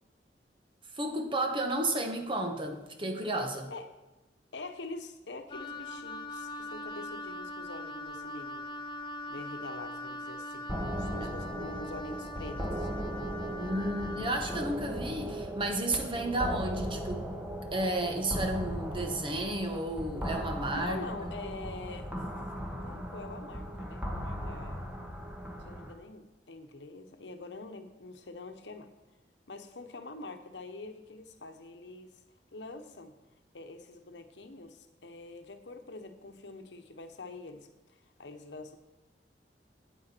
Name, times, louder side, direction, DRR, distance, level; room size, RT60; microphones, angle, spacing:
voice 1, 0.9-3.7 11.2-11.3 13.6-17.3 17.7-21.0, right 1 dB, 30° right, 4 dB, 1.3 m, -32 dB
voice 2, 4.5-8.7 9.3-12.9 20.7-22.1 22.4-22.5 22.8-24.8 25.6-28.9 29.5-32.2 32.5-33.1 33.5-38.8, left 2 dB, 85° left, 7 dB, 1.0 m, -45 dB
Wind instrument woodwind instrument, 5.5-14.7, left 1 dB, 30° left, 0.8 m, -41 dB
sound 1, 10.7-25.9, equal, 10° right, 1.3 m, -37 dB
9.5 x 9.0 x 4.5 m, 1.1 s
head